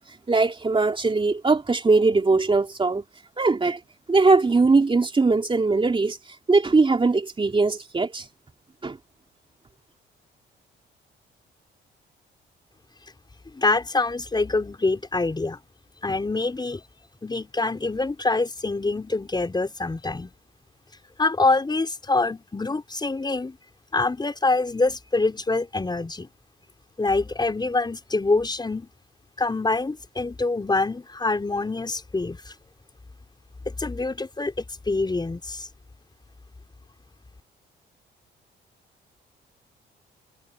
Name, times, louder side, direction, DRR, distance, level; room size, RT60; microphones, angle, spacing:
voice 1, 0.3-3.0 3.4-3.8 4.1-6.2 6.5-8.3 8.8-9.0, right 3 dB, 25° right, 3.4 m, -20 dB
voice 2, 13.5-15.6 16.0-16.8 17.2-20.3 21.2-23.6 23.9-26.3 27.0-28.9 29.4-32.5 33.6-35.7, left 3 dB, 20° left, 5.1 m, -25 dB
cardioid pair, 90°, 20 cm